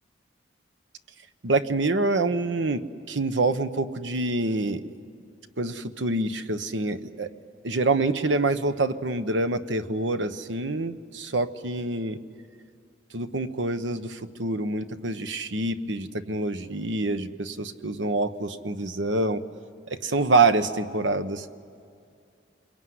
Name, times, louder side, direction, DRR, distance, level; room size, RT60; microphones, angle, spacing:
voice 1, 1.4-4.8 5.6-7.3 7.6-12.2 13.1-19.4 19.9-21.5, right 2 dB, 90° right, 10 dB, 1.1 m, -26 dB
27.0 x 22.0 x 9.6 m, 2.4 s
head